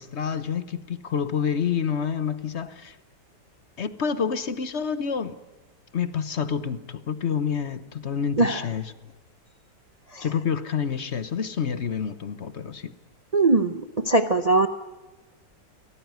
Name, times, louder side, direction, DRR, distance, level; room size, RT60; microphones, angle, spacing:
voice 1, 0.0-3.0 3.8-5.4 5.9-8.9 10.2-12.9, left 7 dB, 45° left, 1.0 m, -28 dB
voice 2, 13.3-14.7, right 2 dB, 50° right, 0.4 m, -21 dB
23.5 x 17.0 x 9.4 m
omnidirectional pair, 2.0 m